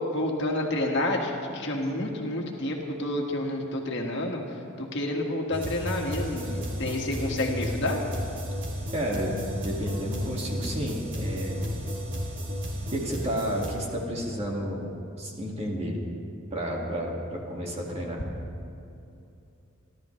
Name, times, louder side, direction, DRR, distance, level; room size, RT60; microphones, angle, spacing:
voice 1, 0.1-4.4 4.8-8.0, left 1 dB, 55° left, 0 dB, 1.8 m, -29 dB
sound 1, 5.5-13.7, equal, 60° right, 2.7 m, -33 dB
voice 2, 8.9-11.7 12.9-14.9 15.2-16.0 16.5-18.2, equal, 30° right, -2 dB, 2.0 m, -31 dB
29.0 x 12.5 x 3.2 m, 2.8 s
head